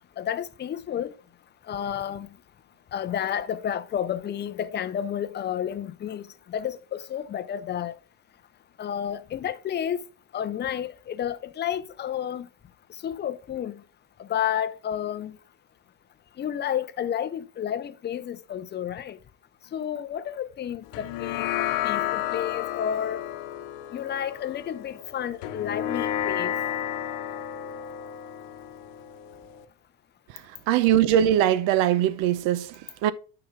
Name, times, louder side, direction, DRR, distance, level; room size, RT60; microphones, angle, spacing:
voice 1, 0.2-1.1 1.7-2.3 2.9-6.2 6.5-7.9 8.8-10.1 10.3-12.5 13.0-13.8 14.2-15.3 16.4-19.2 19.7-23.2 23.9-26.5, left 9 dB, 25° left, 0.5 m, -31 dB
sound 1, 20.9-29.6, left 11 dB, 80° left, 0.9 m, -32 dB
voice 2, 30.7-33.1, right 11 dB, 80° right, 0.8 m, -21 dB
9.7 x 5.9 x 3.7 m
cardioid pair, 140°, 44 cm